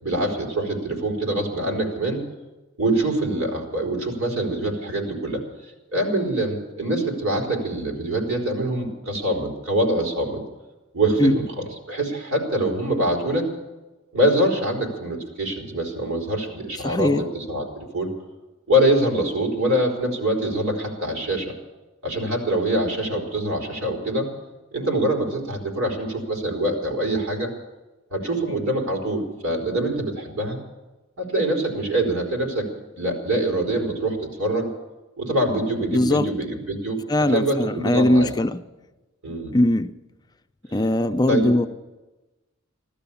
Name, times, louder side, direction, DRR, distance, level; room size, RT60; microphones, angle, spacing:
voice 1, 0.0-2.3 2.8-5.4 5.9-10.4 10.9-13.5 14.1-18.1 18.7-21.5 22.0-24.3 24.7-27.5 28.1-30.6 31.2-32.7 33.0-34.7 35.2-37.0 37.3-38.3 39.2-39.6 41.3-41.5, right 1 dB, 75° right, 4.2 m, -24 dB
voice 2, 16.8-17.3 35.9-36.3 37.1-38.6 39.5-39.9 40.7-41.7, left 1 dB, 20° left, 0.5 m, -20 dB
15.5 x 13.0 x 7.0 m
head